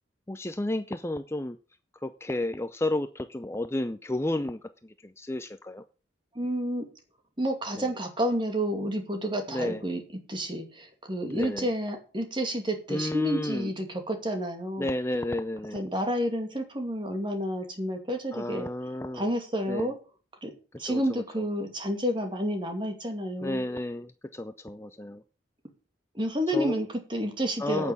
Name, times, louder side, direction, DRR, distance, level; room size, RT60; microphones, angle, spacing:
voice 1, 0.3-1.6 2.0-5.8 7.8-7.9 9.5-9.8 11.3-11.7 12.9-13.7 14.8-15.9 18.3-19.3 19.7-19.9 20.8-21.4 23.4-25.2 26.5-26.7 27.6-27.9, left 1 dB, 15° left, 10 dB, 0.5 m, -32 dB
voice 2, 6.3-6.8 7.4-10.0 10.3-14.9 15.7-18.7 19.1-19.9 20.4-20.5 20.8-23.6 26.1-27.9, equal, 25° right, 4 dB, 2.5 m, -30 dB
9.3 x 8.4 x 7.0 m, 0.36 s
head